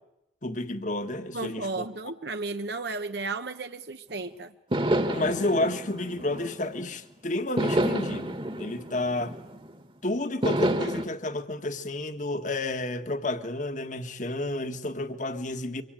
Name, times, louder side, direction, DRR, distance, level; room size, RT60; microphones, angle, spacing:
voice 1, 0.4-1.8 5.1-9.3 10.0-15.8, left 2 dB, 40° left, 1.6 m, -30 dB
voice 2, 1.3-4.5, right 3 dB, 60° right, 1.0 m, -34 dB
sound 1, 4.1-4.2 4.7-7.0 7.6-9.8 10.4-11.0, right 1 dB, 30° right, 1.7 m, -29 dB
25.0 x 25.0 x 9.0 m
head